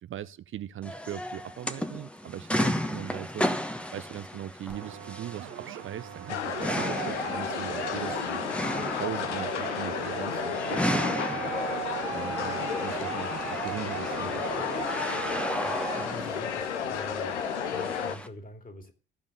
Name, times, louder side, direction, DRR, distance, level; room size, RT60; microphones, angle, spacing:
voice 1, 0.0-3.5 3.9-8.4 8.8-11.6 12.1-14.6, right 11 dB, 35° right, 0.6 m, -40 dB
sound 1, 0.8-18.3, left 1 dB, 5° left, 1.2 m, -34 dB
sound 2, 4.7-16.1, right 11 dB, 60° right, 1.3 m, -38 dB
sound 3, 6.3-18.2, left 8 dB, 80° left, 0.8 m, -33 dB
voice 2, 15.5-17.4 17.7-18.9, left 1 dB, 25° left, 2.7 m, -45 dB
15.0 x 5.2 x 8.2 m
figure-of-eight pair, 55°, 34 cm